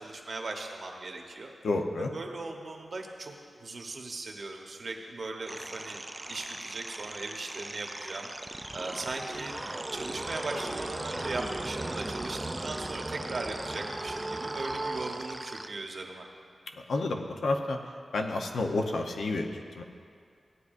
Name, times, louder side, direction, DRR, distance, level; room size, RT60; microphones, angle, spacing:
voice 1, 0.0-1.5 2.0-3.3 3.6-6.0 6.3-9.5 9.9-16.3, right 3 dB, 50° right, 2 dB, 1.1 m, -38 dB
voice 2, 1.6-2.1 16.9-17.8 18.1-19.8, left 2 dB, 90° left, 3 dB, 0.8 m, -30 dB
sound 1, 5.5-15.7, right 2 dB, 15° right, 0.3 m, -37 dB
17.0 x 9.5 x 2.6 m, 2.2 s
wide cardioid pair, 160°, 0 cm